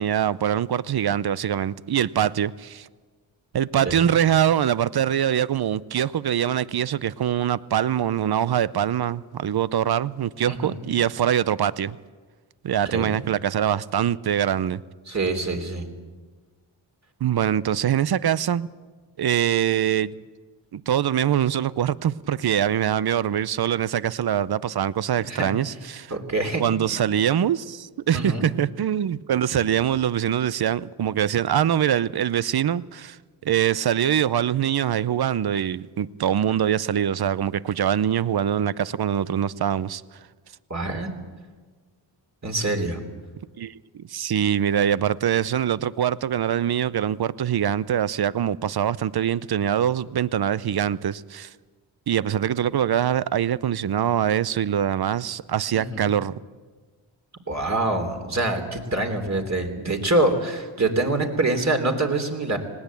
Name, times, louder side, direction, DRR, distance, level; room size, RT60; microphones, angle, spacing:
voice 1, 0.0-2.9 3.5-12.0 12.6-14.8 17.2-18.7 19.2-20.1 20.7-26.1 26.6-33.2 33.4-40.0 43.6-51.5 52.1-56.4, right 10 dB, 55° right, 0.7 m, -23 dB
voice 2, 10.5-10.8 12.9-13.1 15.1-15.9 25.3-25.5 26.1-26.6 28.1-28.4 40.7-41.1 42.4-43.0 55.7-56.1 57.5-62.6, right 2 dB, 35° right, 3.3 m, -25 dB
19.5 x 18.0 x 8.3 m
cardioid pair, 65°, 47 cm